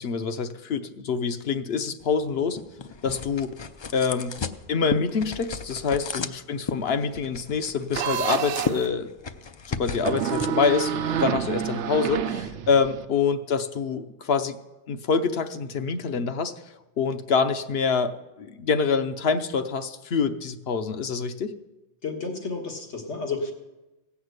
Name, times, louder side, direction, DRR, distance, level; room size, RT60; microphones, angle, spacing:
voice 1, 0.0-2.6 3.0-3.5 3.9-4.3 4.7-9.1 9.7-14.6 14.9-16.5 17.0-18.1 18.4-21.5, left 5 dB, 65° left, 9 dB, 1.0 m, -26 dB
sound 1, 2.0-12.2, left 5 dB, 45° left, 0.3 m, -36 dB
sound 2, 7.9-8.9 10.0-13.1, right 9 dB, 85° right, 0.9 m, -28 dB
voice 2, 22.0-23.5, left 4 dB, 85° left, 3 dB, 1.9 m, -31 dB
16.5 x 5.9 x 8.0 m, 1.0 s
omnidirectional pair, 1.1 m